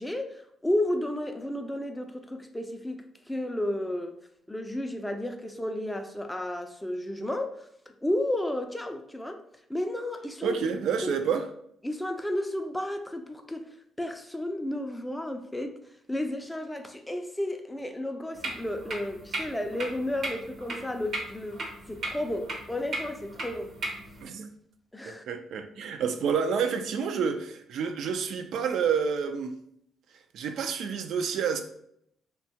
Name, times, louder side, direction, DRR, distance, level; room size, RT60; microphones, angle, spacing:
voice 1, 0.0-4.2 4.5-9.4 9.7-10.6 11.0-11.2 11.8-13.7 14.0-15.8 16.1-23.7 24.9-25.2, left 1 dB, 10° left, 0.3 m, -32 dB
voice 2, 10.4-11.5 24.2-24.5 25.1-29.6 30.3-31.6, right 6 dB, 75° right, 0.3 m, -29 dB
sound 1, 18.3-24.2, right 2 dB, 60° right, 0.7 m, -37 dB
2.7 x 2.2 x 2.7 m
cardioid pair, 90°, 0 cm